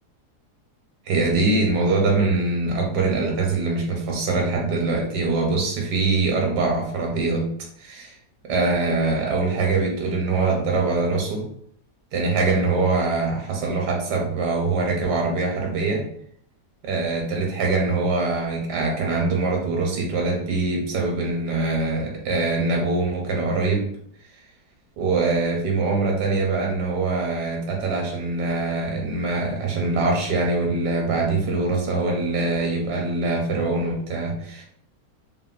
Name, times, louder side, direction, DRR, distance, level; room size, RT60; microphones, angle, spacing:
voice 1, 1.1-7.5 7.8-8.2 8.4-11.5 12.1-16.0 16.8-23.9 25.0-34.7, right 3 dB, 80° right, 0 dB, 1.2 m, -23 dB
3.3 x 2.0 x 2.3 m, 0.65 s
omnidirectional pair, 1.8 m